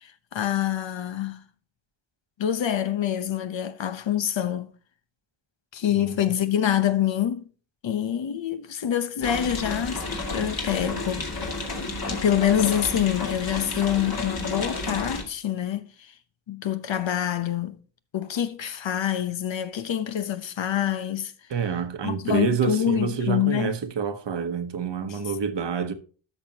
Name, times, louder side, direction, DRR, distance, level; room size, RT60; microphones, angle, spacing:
voice 1, 0.0-1.4 2.4-4.7 5.7-7.4 7.8-10.0 10.3-11.3 12.1-15.9 16.5-17.8 18.1-21.3 22.0-23.7 25.1-25.2, left 10 dB, 80° left, 0.9 m, -26 dB
voice 2, 5.9-6.3 21.5-25.9, right 6 dB, 70° right, 1.1 m, -28 dB
sound 1, 9.2-15.2, left 2 dB, 55° left, 2.2 m, -31 dB
12.5 x 6.4 x 2.9 m
wide cardioid pair, 80°, 44 cm